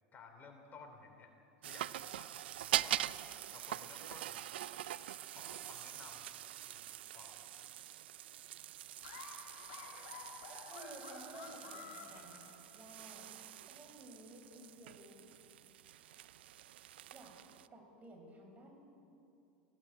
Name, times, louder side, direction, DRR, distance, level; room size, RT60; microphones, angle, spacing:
voice 1, 0.1-1.3 1.6-3.2 3.5-4.7 5.3-7.6, left 4 dB, 35° left, 4 dB, 3.1 m, -56 dB
sound 1, 1.6-17.7, right 13 dB, 80° right, 0.5 m, -44 dB
Laughter, 9.0-13.0, left 5 dB, 65° left, 4.3 m, -52 dB
voice 2, 10.7-13.2 13.6-15.3 17.1-17.3 17.7-18.8, right 1 dB, 25° right, 2 dB, 6.1 m, -54 dB
19.0 x 16.0 x 8.6 m, 2.7 s
hypercardioid pair, 95°, 6 cm